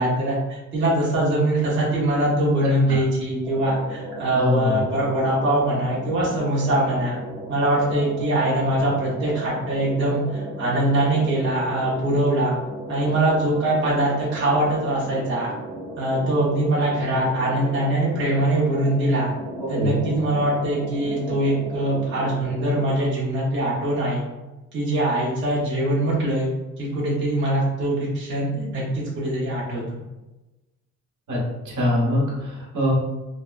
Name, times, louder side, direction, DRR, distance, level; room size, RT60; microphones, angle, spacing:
voice 1, 0.0-7.2 7.5-12.5 12.9-15.5 16.0-19.3 19.7-24.2 24.7-26.5 26.8-30.0, right 1 dB, 40° right, -7 dB, 0.7 m, -22 dB
voice 2, 2.6-3.0 4.3-4.8 19.6-20.0 31.3-32.9, left 1 dB, 70° right, -4 dB, 1.0 m, -24 dB
sound 1, 3.4-22.9, right 2 dB, 15° right, 0.3 m, -36 dB
3.4 x 2.0 x 2.3 m, 1.1 s
wide cardioid pair, 155°, 31 cm